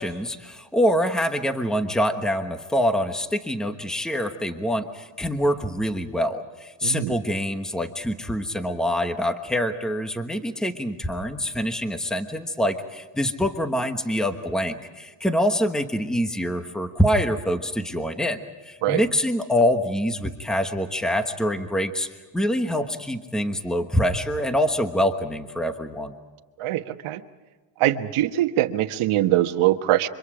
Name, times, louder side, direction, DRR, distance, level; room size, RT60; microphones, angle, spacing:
voice 1, 0.0-18.4 18.6-22.1 22.3-26.1, equal, ahead, 7 dB, 1.2 m, -25 dB
voice 2, 6.8-7.1 18.8-19.0 26.6-27.2 27.8-30.1, right 14 dB, 80° right, 8 dB, 1.5 m, -22 dB
30.0 x 25.5 x 5.0 m, 1.3 s
cardioid pair, 160°, 49 cm